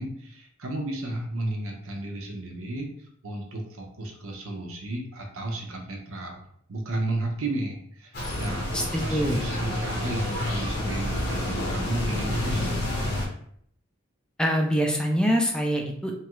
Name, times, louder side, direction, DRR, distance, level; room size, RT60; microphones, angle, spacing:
voice 1, 0.0-2.9 3.2-6.4 6.7-12.7, right 1 dB, 90° right, 1 dB, 0.6 m, -33 dB
sound 1, 8.1-13.2, left 1 dB, 55° left, 0.7 m, -29 dB
voice 2, 8.7-9.4 14.4-16.1, equal, 5° left, 1 dB, 0.3 m, -24 dB
2.9 x 2.3 x 2.9 m, 0.66 s
head